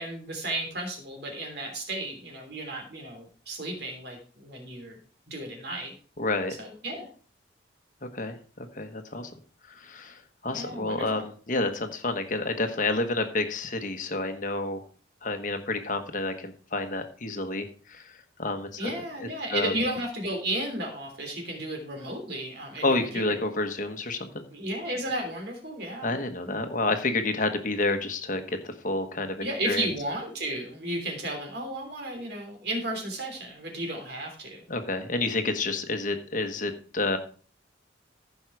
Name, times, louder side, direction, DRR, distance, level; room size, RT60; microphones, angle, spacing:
voice 1, 0.0-5.0 5.3-5.9 6.6-7.1 10.5-11.2 18.8-23.3 24.5-26.1 26.4-26.7 29.4-34.6, right 1 dB, 55° right, 2 dB, 3.3 m, -33 dB
voice 2, 6.2-6.5 8.0-9.3 9.7-14.8 15.2-18.9 19.5-19.7 22.8-24.4 26.0-29.9 34.7-37.2, left 2 dB, 45° left, 6 dB, 1.2 m, -29 dB
15.0 x 5.6 x 4.7 m, 0.41 s
head